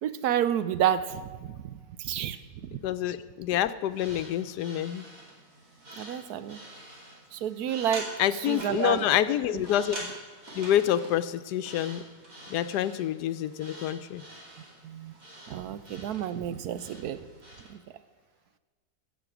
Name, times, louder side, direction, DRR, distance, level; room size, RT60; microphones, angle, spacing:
voice 1, 0.0-2.4 2.6-2.8 6.0-6.6 7.3-8.1 8.4-9.0 9.5-9.6 14.8-15.1 15.5-17.2 17.7-17.8, right 10 dB, 75° right, 12 dB, 1.2 m, -30 dB
voice 2, 2.8-5.0 8.2-10.1 10.5-12.0 12.5-14.2, left 11 dB, 90° left, 13 dB, 1.2 m, -27 dB
sound 1, 3.9-17.7, right 1 dB, 60° right, 3.2 m, -46 dB
15.5 x 6.8 x 6.0 m, 1.5 s
omnidirectional pair, 1.7 m